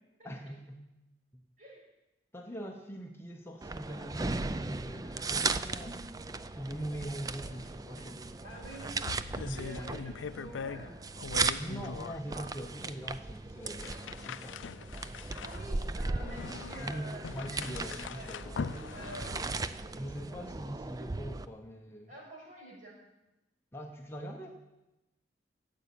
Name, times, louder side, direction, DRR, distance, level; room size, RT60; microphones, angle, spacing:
voice 1, 0.2-0.9 1.3-1.4 2.3-6.0 6.5-8.2 9.4-10.3 11.6-14.0 14.2-14.7 16.8-18.6 19.9-22.1 23.7-24.5, equal, 15° left, 1 dB, 1.0 m, -42 dB
sound 1, 3.6-21.5, right 3 dB, 20° right, 0.4 m, -37 dB
sound 2, 7.4-7.7 8.0-8.1 8.5-10.9 11.2-12.2 12.8-13.0 13.6-19.7, left 5 dB, 85° left, 0.4 m, -42 dB
voice 2, 8.4-9.1 9.5-11.0 12.2-12.5 15.4-17.8 18.1-18.3 18.9-19.3 22.1-22.9, right 1 dB, 45° right, -4 dB, 6.7 m, -47 dB
13.5 x 8.3 x 8.6 m, 0.96 s
head